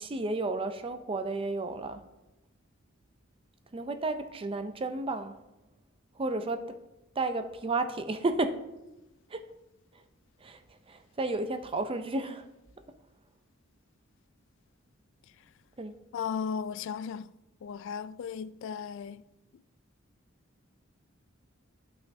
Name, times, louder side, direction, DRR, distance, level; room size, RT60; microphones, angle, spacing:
voice 1, 0.0-2.0 3.7-5.4 6.2-6.8 7.2-8.6 9.3-9.4 10.4-10.6 10.9-12.4 15.8-15.9, right 2 dB, 25° right, 0.5 m, -32 dB
voice 2, 16.1-17.3 17.6-19.2, left 6 dB, 65° left, 0.3 m, -35 dB
12.5 x 5.6 x 2.7 m
head